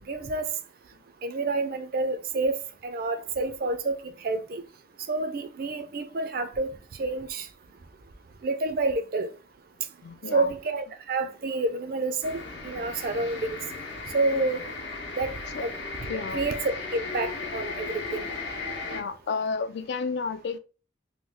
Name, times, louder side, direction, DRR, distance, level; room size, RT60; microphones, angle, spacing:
voice 1, 0.1-0.5 1.2-2.5 2.8-4.0 4.2-4.6 5.1-6.7 7.0-7.5 8.4-9.3 10.3-13.6 14.1-14.6 15.2-15.3 15.6-15.7 16.1-16.6 16.9-18.3, right 2 dB, 50° right, 0.4 m, -28 dB
voice 2, 10.0-10.5 15.5-15.6 16.1-16.5 18.9-20.6, left 4 dB, 60° left, 0.4 m, -31 dB
sound 1, 12.2-19.0, left 4 dB, 80° left, 0.8 m, -36 dB
3.0 x 2.3 x 3.4 m
head